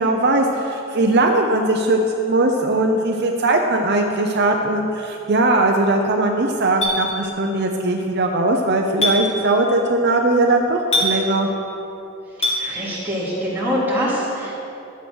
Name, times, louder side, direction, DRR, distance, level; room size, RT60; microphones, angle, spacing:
voice 1, 0.0-11.5, right 2 dB, 55° right, 2 dB, 0.8 m, -19 dB
Chink clink, 6.8-7.0 9.0-9.2 10.9-11.1 12.4-12.6, left 1 dB, 30° left, 2.5 m, -19 dB
voice 2, 12.6-14.6, equal, 10° right, -8 dB, 3.3 m, -24 dB
13.0 x 8.0 x 6.3 m, 2.9 s
head